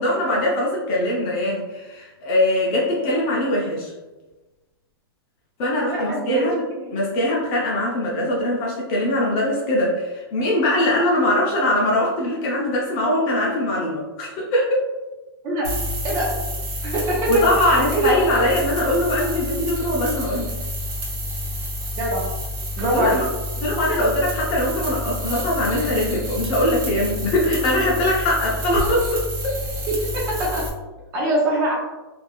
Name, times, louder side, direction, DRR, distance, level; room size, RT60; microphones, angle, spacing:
voice 1, 0.0-3.9 5.6-6.6 6.9-14.8 17.3-20.5 22.9-23.2 23.6-29.5, left 1 dB, 30° left, -4 dB, 0.5 m, -22 dB
voice 2, 5.9-6.4 6.8-7.0 15.4-15.6 16.0-16.3 16.8-17.3 17.7-18.1 22.0-22.2 22.8-23.2 30.1-30.6 31.1-31.7, right 1 dB, 25° right, -3 dB, 0.5 m, -23 dB
sound 1, 15.6-30.7, left 1 dB, 40° right, 0.9 m, -29 dB
3.1 x 2.6 x 2.2 m, 1.1 s
hypercardioid pair, 155°, 13 cm